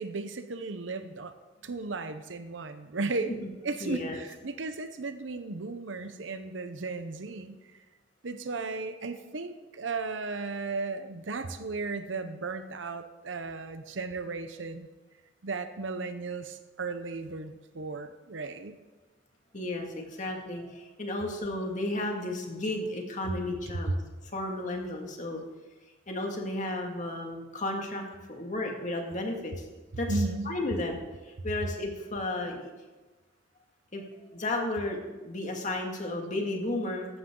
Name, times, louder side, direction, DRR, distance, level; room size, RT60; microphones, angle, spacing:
voice 1, 0.0-1.3 1.6-3.3 3.6-7.6 8.2-14.9 15.4-18.7 30.1-30.6, right 3 dB, 85° right, 9 dB, 0.8 m, -35 dB
voice 2, 3.8-4.2 19.5-24.0 24.3-25.4 26.1-29.5 30.0-32.7 33.9-34.0 34.3-37.1, left 2 dB, 40° left, 2 dB, 2.1 m, -33 dB
15.0 x 11.5 x 3.9 m, 1.2 s
head